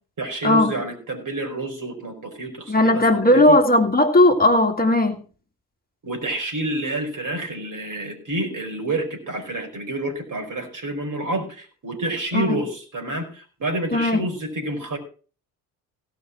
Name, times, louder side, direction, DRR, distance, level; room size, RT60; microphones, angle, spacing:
voice 1, 0.2-3.6 6.0-15.0, right 1 dB, 40° right, 4.9 m, -28 dB
voice 2, 2.7-5.2 12.3-12.6 13.9-14.2, left 1 dB, 20° left, 2.1 m, -17 dB
17.0 x 6.0 x 6.1 m
figure-of-eight pair, 55°, 49 cm